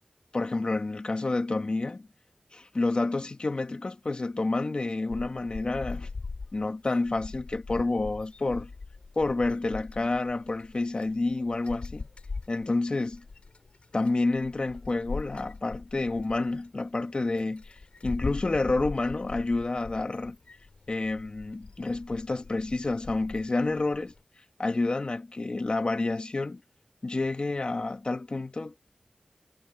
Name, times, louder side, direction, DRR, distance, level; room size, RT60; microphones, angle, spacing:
voice 1, 0.3-2.1 2.5-6.1 6.5-8.7 9.2-12.1 12.5-13.2 13.9-17.6 18.0-20.4 20.9-24.1 24.6-26.6 27.0-28.8, left 2 dB, 55° left, 1.8 m, -29 dB
sound 1, 5.1-24.2, left 4 dB, 80° left, 3.5 m, -42 dB
wide cardioid pair, 50°, 2 cm